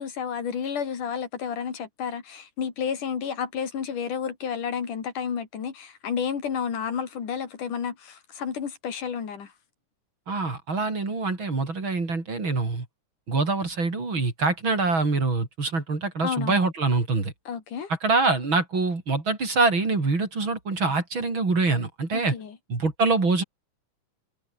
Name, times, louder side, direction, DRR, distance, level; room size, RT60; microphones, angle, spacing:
voice 1, 0.0-9.5 16.2-16.6 17.5-17.9 22.1-22.6, left 7 dB, 85° left, 4.6 m, -31 dB
voice 2, 10.3-12.8 13.3-17.3 18.0-22.3 22.7-23.4, right 3 dB, 40° right, 5.0 m, -25 dB
omnidirectional pair, 3.5 m